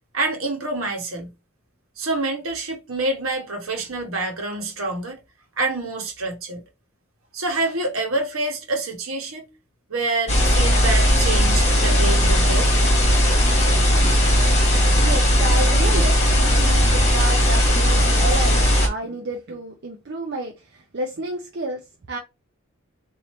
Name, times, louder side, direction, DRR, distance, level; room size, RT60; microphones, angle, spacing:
voice 1, 0.1-1.3 2.0-5.2 5.6-6.6 7.3-9.5 9.9-12.7, right 2 dB, 70° right, 1.2 m, -27 dB
sound 1, 10.3-18.9, equal, 30° left, 1.3 m, -17 dB
voice 2, 15.0-20.5 20.9-21.8 22.1-22.2, right 2 dB, 55° right, 0.6 m, -30 dB
3.1 x 2.7 x 4.2 m
head